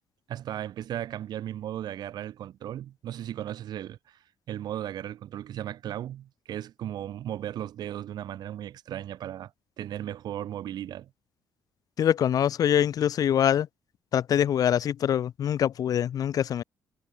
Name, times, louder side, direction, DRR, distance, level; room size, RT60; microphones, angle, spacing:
voice 1, 0.3-4.2 4.5-9.5 9.8-11.1, right 11 dB, 70° right, 2.8 m, -36 dB
voice 2, 12.0-13.7 14.1-16.6, left 9 dB, 55° left, 0.8 m, -24 dB
cardioid pair, 110°, 7 cm